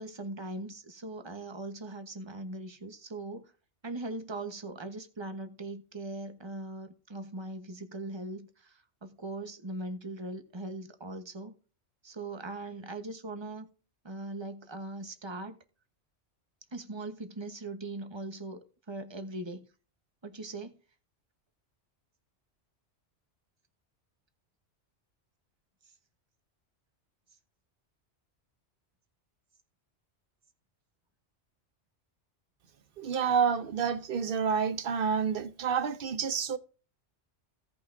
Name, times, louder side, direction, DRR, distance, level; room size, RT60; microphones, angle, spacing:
voice 1, 0.0-3.5 3.8-11.5 12.0-13.7 14.0-15.6 16.7-18.6 18.9-19.7 20.2-20.7, right 2 dB, 25° right, 1.2 m, -40 dB
voice 2, 33.0-36.6, right 6 dB, 55° right, 1.0 m, -29 dB
17.0 x 5.9 x 2.7 m
omnidirectional pair, 1.2 m